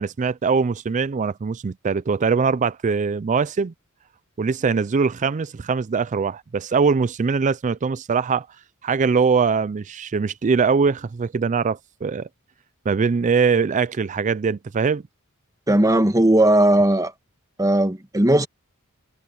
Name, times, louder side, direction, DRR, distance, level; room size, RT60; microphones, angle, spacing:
voice 1, 0.0-3.7 4.4-8.5 8.8-12.3 12.9-15.0, right 5 dB, 35° right, 0.4 m, -22 dB
voice 2, 15.7-17.1 17.6-18.5, right 1 dB, 15° right, 1.3 m, -17 dB
head